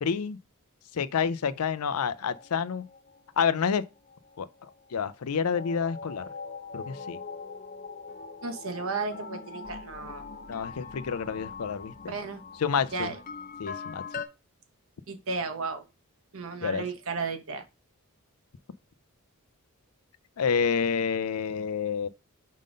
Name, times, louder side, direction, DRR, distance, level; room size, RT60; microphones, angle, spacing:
voice 1, 0.0-0.4 0.9-2.8 3.4-3.8 4.4-4.5 4.9-6.2 6.7-7.2 10.5-12.2 12.6-13.1 13.6-14.0 16.6-16.8 20.4-22.1, left 6 dB, 80° left, 0.5 m, -28 dB
sound 1, 1.8-5.3 5.5-14.3, left 5 dB, 40° left, 0.7 m, -42 dB
voice 2, 8.4-10.2 12.1-12.4 12.9-13.2 15.1-15.8 16.3-17.6, right 4 dB, 65° right, 1.0 m, -34 dB
5.2 x 3.8 x 5.1 m
head